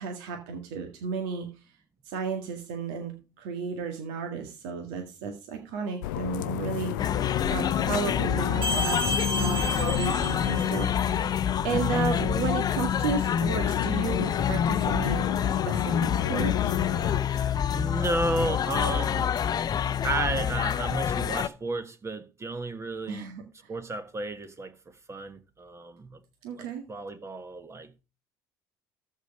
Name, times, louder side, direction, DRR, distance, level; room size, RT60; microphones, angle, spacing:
voice 1, 0.0-1.5 2.0-6.9 7.5-9.0 9.3-15.2 15.6-16.5 23.1-23.4 26.4-26.8, right 5 dB, 70° right, 1.8 m, -33 dB
sound 1, 6.0-17.2, left 17 dB, 80° left, 0.4 m, -33 dB
sound 2, 7.0-21.5, left 8 dB, 40° left, 0.7 m, -27 dB
sound 3, 8.6-11.2, equal, 55° right, 3.5 m, -32 dB
voice 2, 17.2-19.3 20.0-23.3 23.7-26.2 26.6-27.9, right 2 dB, 25° right, 1.4 m, -33 dB
13.5 x 4.8 x 5.3 m
hypercardioid pair, 65°, 10 cm